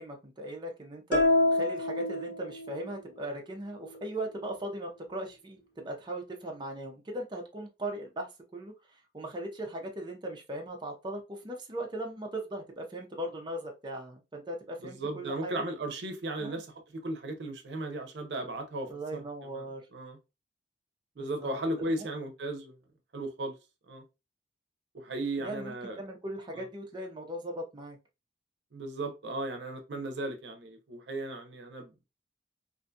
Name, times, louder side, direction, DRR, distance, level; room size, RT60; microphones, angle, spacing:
voice 1, 0.0-15.5 16.4-16.6 18.9-19.9 21.2-21.6 22.0-22.1 25.4-28.0, right 1 dB, 25° right, 0.5 m, -39 dB
sound 1, 1.1-2.9, left 2 dB, 75° left, 0.8 m, -27 dB
voice 2, 14.8-19.2 19.5-19.6 19.9-20.2 21.2-22.8 23.1-23.6 23.9-24.0 24.9-26.0 26.5-26.6 28.7-32.0, right 2 dB, 85° right, 0.6 m, -36 dB
2.6 x 2.2 x 2.6 m
head